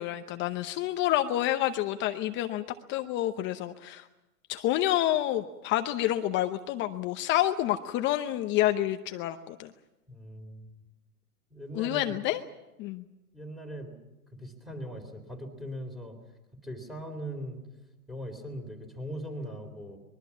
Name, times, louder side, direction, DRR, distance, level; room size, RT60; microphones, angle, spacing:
voice 1, 0.0-4.1 4.5-9.7 11.7-12.4 12.8-13.0, left 13 dB, 25° left, 8 dB, 0.8 m, -28 dB
voice 2, 10.1-10.7 11.5-12.2 13.3-14.0 14.3-16.2 16.6-17.6 18.1-20.0, equal, ahead, 6 dB, 3.9 m, -40 dB
24.0 x 22.0 x 7.3 m, 1.0 s
hypercardioid pair, 130°, 45 cm